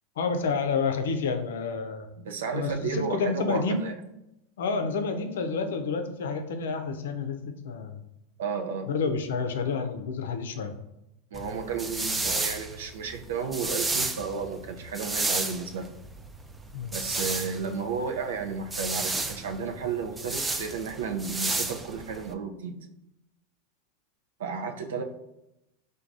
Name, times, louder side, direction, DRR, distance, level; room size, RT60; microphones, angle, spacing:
voice 1, 0.2-2.1 2.5-3.8 4.6-8.0 8.9-10.7 16.7-17.0, left 4 dB, 85° left, 6 dB, 0.5 m, -29 dB
voice 2, 2.2-4.0 8.4-8.9 11.3-16.0 16.9-22.9 24.4-25.0, right 5 dB, 90° right, 4 dB, 0.5 m, -33 dB
sound 1, 11.3-22.3, right 3 dB, 10° right, 0.4 m, -32 dB
4.6 x 2.2 x 2.5 m, 0.88 s
supercardioid pair, 125°, 0 cm